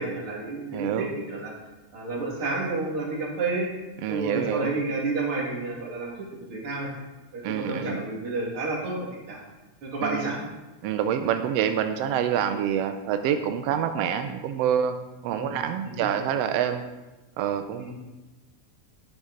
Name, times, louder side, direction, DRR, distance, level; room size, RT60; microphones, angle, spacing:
voice 1, 0.0-1.5 1.9-3.7 4.1-6.9 7.3-9.0 9.3-9.4 9.8-10.4 15.3-15.5 15.8-16.1 17.8-17.9, right 3 dB, 45° right, -2 dB, 2.7 m, -30 dB
voice 2, 0.7-1.1 4.0-4.7 7.4-8.0 10.0-10.3 10.8-15.0 15.2-16.8 17.4-17.9, right 9 dB, 90° right, 8 dB, 1.4 m, -27 dB
10.0 x 9.5 x 3.8 m, 1.1 s
omnidirectional pair, 3.5 m